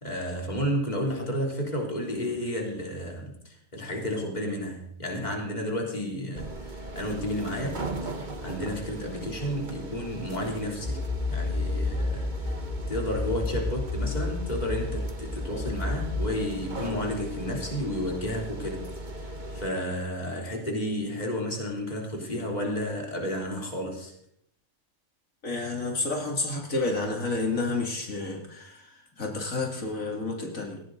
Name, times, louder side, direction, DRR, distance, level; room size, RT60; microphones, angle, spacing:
voice 1, 0.0-11.0 11.3-12.6 12.9-19.3 19.5-24.1, equal, 30° left, 0 dB, 3.5 m, -32 dB
sound 1, 6.4-19.7, right 2 dB, 35° right, 1.5 m, -38 dB
sound 2, 10.8-16.2, left 2 dB, 5° left, 4.1 m, -31 dB
voice 2, 25.4-30.8, left 3 dB, 85° left, 1 dB, 3.2 m, -30 dB
18.0 x 16.5 x 4.0 m, 0.71 s
omnidirectional pair, 1.4 m